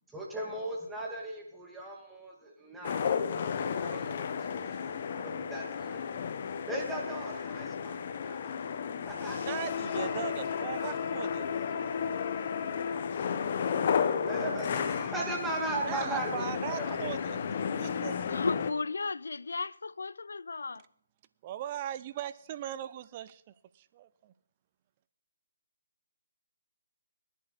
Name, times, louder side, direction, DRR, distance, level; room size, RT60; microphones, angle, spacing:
voice 1, 0.1-3.2 3.5-6.0 6.7-9.4 14.1-16.9, right 2 dB, 5° right, 1.9 m, -38 dB
sound 1, 2.8-18.7, left 7 dB, 40° left, 1.1 m, -33 dB
voice 2, 9.4-11.9 15.8-18.4 21.4-23.4 23.7-24.3, right 12 dB, 30° right, 0.6 m, -39 dB
voice 3, 18.3-20.8, left 4 dB, 80° left, 0.4 m, -34 dB
22.0 x 10.0 x 4.1 m
hypercardioid pair, 160°, 0 cm